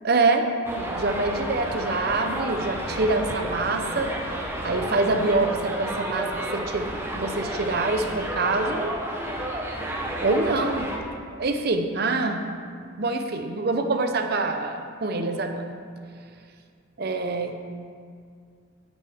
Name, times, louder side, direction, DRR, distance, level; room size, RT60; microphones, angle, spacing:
voice 1, 0.0-0.5 0.7-4.1 4.6-9.0 10.2-10.9 11.3-12.4 13.0-15.7 17.0-17.5, right 3 dB, 50° right, 6 dB, 0.7 m, -25 dB
Subway metro underground, 0.6-11.0, right 1 dB, 10° right, 0.8 m, -31 dB
10.5 x 7.9 x 3.5 m, 2.2 s
head